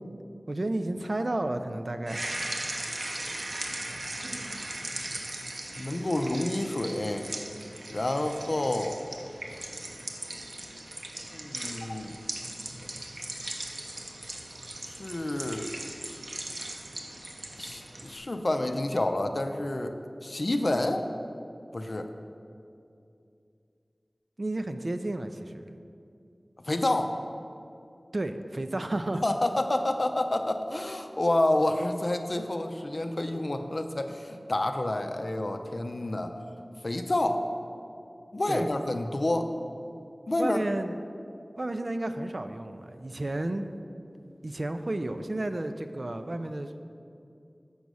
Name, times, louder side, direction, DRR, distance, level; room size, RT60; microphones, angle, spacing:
voice 1, 0.5-2.3 24.4-25.6 28.1-29.2 38.5-38.7 40.4-41.0 41.6-43.7 44.4-46.8, right 1 dB, 55° right, 8 dB, 0.4 m, -32 dB
sound 1, 2.1-18.2, right 1 dB, 75° right, 0.8 m, -38 dB
voice 2, 5.8-7.3 7.9-8.9 11.3-12.2 14.9-15.7 17.6-20.0 20.2-21.1 21.7-22.1 26.6-27.2 29.2-36.4 36.8-37.4 38.3-39.5 40.3-40.6, left 1 dB, 55° left, 6 dB, 0.5 m, -29 dB
7.0 x 5.3 x 6.2 m, 2.5 s
wide cardioid pair, 45°, 0 cm